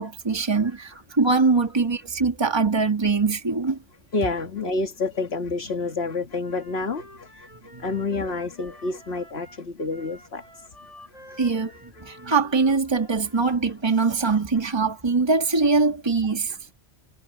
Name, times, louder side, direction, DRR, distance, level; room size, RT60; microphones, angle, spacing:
voice 1, 0.0-3.8 7.7-7.9 11.4-16.5, right 4 dB, 20° right, 1.7 m, -22 dB
voice 2, 4.1-7.3 7.8-10.4, left 3 dB, 60° left, 2.0 m, -28 dB
Wind instrument woodwind instrument, 6.4-13.4, equal, 30° left, 6.1 m, -49 dB
omnidirectional pair, 1.2 m